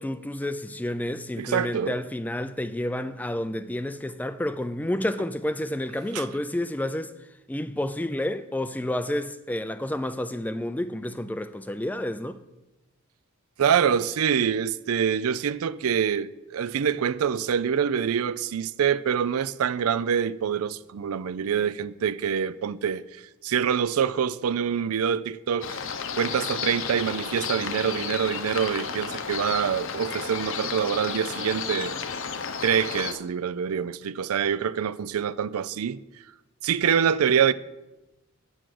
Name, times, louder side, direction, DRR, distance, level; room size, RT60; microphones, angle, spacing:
voice 1, 0.0-7.1 7.5-12.4, left 1 dB, 5° left, 0.3 m, -30 dB
voice 2, 1.4-2.0 6.1-6.2 13.6-23.0 23.4-25.8 26.1-31.9 32.6-36.0 36.6-37.5, right 7 dB, 80° right, 0.4 m, -25 dB
sound 1, 25.6-33.1, left 6 dB, 60° left, 0.7 m, -32 dB
8.8 x 6.1 x 7.7 m
head